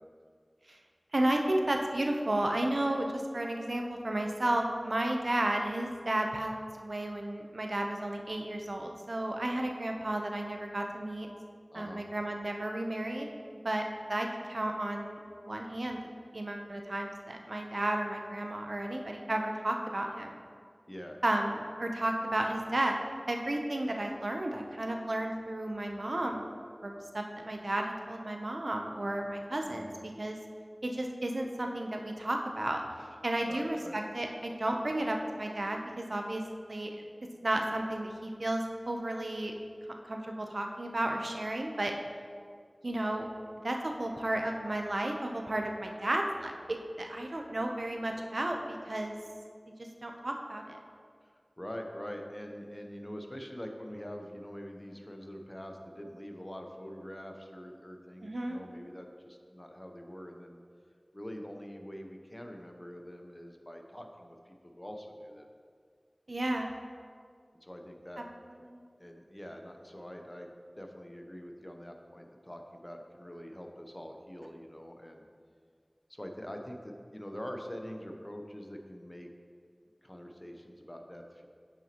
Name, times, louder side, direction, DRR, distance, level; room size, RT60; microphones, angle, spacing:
voice 1, 1.1-11.3 11.7-13.3 13.6-15.2 15.5-16.0 16.3-20.3 21.2-22.9 23.3-26.4 26.8-29.9 30.2-30.4 30.8-32.8 33.2-36.4 36.7-36.9 37.4-39.5 40.1-41.9 42.8-43.3 43.6-49.1 50.0-50.8 58.2-58.6 66.3-66.7 68.7-68.8, right 1 dB, 75° right, 2 dB, 0.7 m, -33 dB
voice 2, 11.7-12.0 20.9-21.2 29.7-29.9 33.5-34.0 51.2-60.6 61.1-65.5 67.6-68.2 69.0-70.5 70.8-75.2 76.1-79.3 80.0-81.5, equal, 30° left, 3 dB, 0.7 m, -44 dB
9.1 x 5.9 x 2.9 m, 2.1 s
wide cardioid pair, 45°, 0 cm